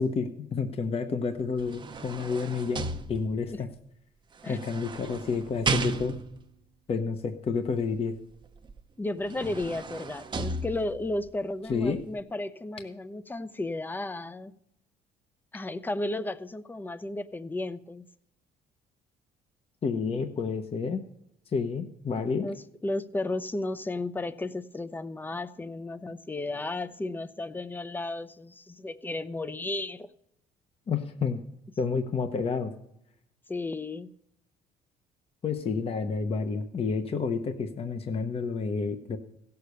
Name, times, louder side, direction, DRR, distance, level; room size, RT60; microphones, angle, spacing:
voice 1, 0.0-3.7 4.5-6.1 6.9-8.2 11.7-12.0 19.8-21.0 21.5-22.5 30.9-31.4 31.8-32.7 35.4-39.2, left 5 dB, 35° left, 7 dB, 0.9 m, -30 dB
sound 1, 1.4-3.6 4.4-6.4 8.7-8.8 9.2-11.2 11.7-11.9, right 4 dB, 30° right, 0.8 m, -34 dB
voice 2, 9.0-14.5 15.5-18.1 22.4-30.1 33.5-34.1, left 2 dB, 10° left, 14 dB, 0.6 m, -34 dB
16.0 x 6.8 x 6.7 m, 0.78 s
cardioid pair, 110°, 17 cm